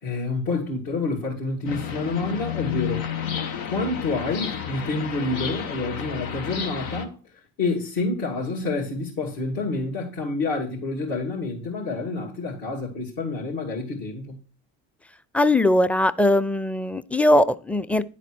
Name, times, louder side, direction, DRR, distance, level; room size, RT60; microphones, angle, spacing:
voice 1, 0.0-3.1 3.6-7.2 7.6-14.4, left 3 dB, 65° left, 2.3 m, -28 dB
sound 1, 1.6-7.0, left 8 dB, 90° left, 1.0 m, -31 dB
voice 2, 15.3-18.0, left 1 dB, 5° left, 0.4 m, -20 dB
10.0 x 4.1 x 6.1 m
hypercardioid pair, 60°, 40 cm